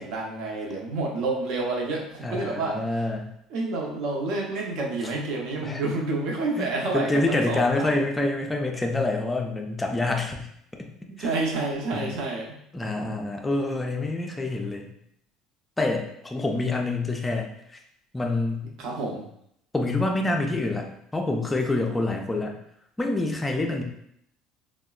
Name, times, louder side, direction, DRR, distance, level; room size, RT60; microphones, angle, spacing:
voice 1, 0.0-2.8 3.5-8.0 11.1-12.6 18.8-19.2, right 2 dB, 60° right, -1 dB, 0.7 m, -29 dB
voice 2, 2.2-3.3 5.6-5.8 6.6-10.9 11.2-11.3 11.9-12.1 12.7-14.9 15.8-17.8 18.1-18.6 19.7-22.5 23.0-23.8, left 2 dB, 10° left, 2 dB, 0.4 m, -27 dB
3.7 x 2.1 x 2.3 m, 0.74 s
cardioid pair, 140°, 0 cm